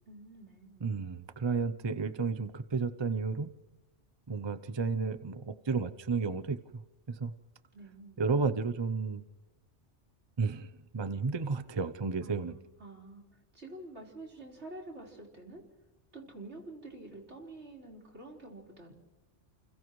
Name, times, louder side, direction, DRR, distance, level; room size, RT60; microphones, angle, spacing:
voice 1, 0.0-0.9 7.7-8.2 12.2-15.6 16.1-18.9, right 2 dB, 65° right, -1 dB, 4.8 m, -48 dB
voice 2, 0.8-3.5 4.3-6.8 7.1-7.3 8.2-9.2 10.4-12.5, right 4 dB, 30° right, 12 dB, 0.6 m, -32 dB
29.5 x 29.5 x 3.2 m, 1.2 s
omnidirectional pair, 1.2 m